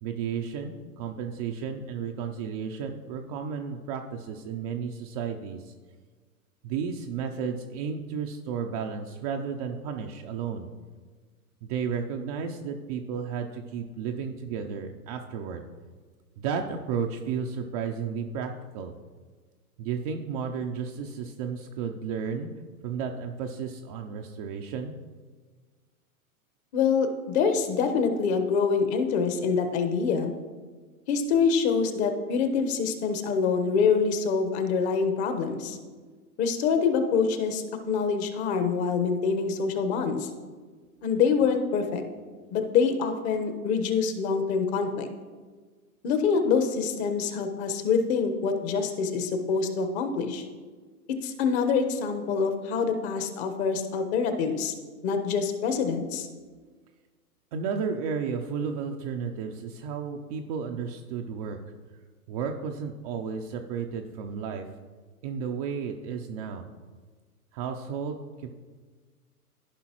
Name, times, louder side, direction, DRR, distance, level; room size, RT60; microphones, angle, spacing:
voice 1, 0.0-5.7 6.6-10.7 11.6-15.6 16.4-18.9 19.8-22.5 22.8-24.9 57.5-61.6 62.3-64.7 65.2-66.6 67.5-68.5, right 6 dB, 25° right, 3 dB, 0.4 m, -33 dB
voice 2, 26.7-30.3 31.1-35.8 36.4-40.3 41.0-42.0 42.5-45.1 46.0-50.5 51.1-54.7 55.0-56.3, left 5 dB, 45° left, 7 dB, 1.2 m, -25 dB
14.0 x 5.4 x 3.0 m, 1.5 s
hypercardioid pair, 115°, 45 cm